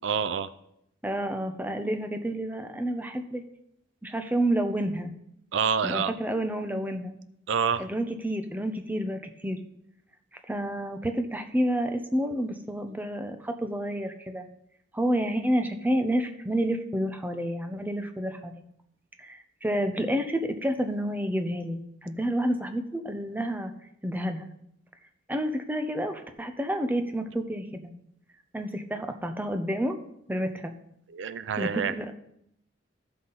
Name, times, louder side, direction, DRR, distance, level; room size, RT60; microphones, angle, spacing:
voice 1, 0.0-0.5 5.5-6.1 7.5-7.8 31.1-31.9, right 6 dB, 75° right, 13 dB, 0.4 m, -27 dB
voice 2, 1.0-3.4 4.0-5.1 5.8-7.1 7.8-9.6 10.5-14.5 14.9-18.5 19.2-23.7 24.0-24.5 25.3-27.9 28.5-30.0 30.3-30.7 31.6-32.1, equal, 10° right, 6 dB, 0.7 m, -29 dB
14.0 x 5.6 x 4.0 m, 0.77 s
head